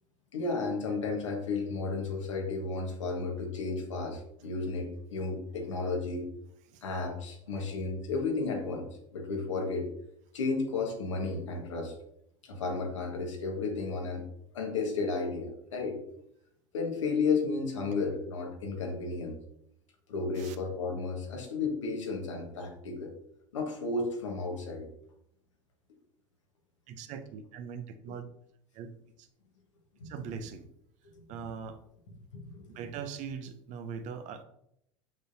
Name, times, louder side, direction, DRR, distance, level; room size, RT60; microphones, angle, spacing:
voice 1, 0.3-6.3 6.8-9.9 10.3-11.9 12.4-14.2 14.5-16.0 16.7-19.4 20.1-23.1 23.5-24.9 30.0-30.1 31.1-31.2 32.3-32.9, left 4 dB, 80° left, 1 dB, 1.7 m, -33 dB
voice 2, 26.9-28.2 28.7-28.9 29.2-29.3 30.0-30.7 31.3-31.8 32.7-34.4, right 6 dB, 50° right, 8 dB, 0.9 m, -41 dB
6.6 x 6.1 x 2.8 m, 0.75 s
hypercardioid pair, 80°, 16 cm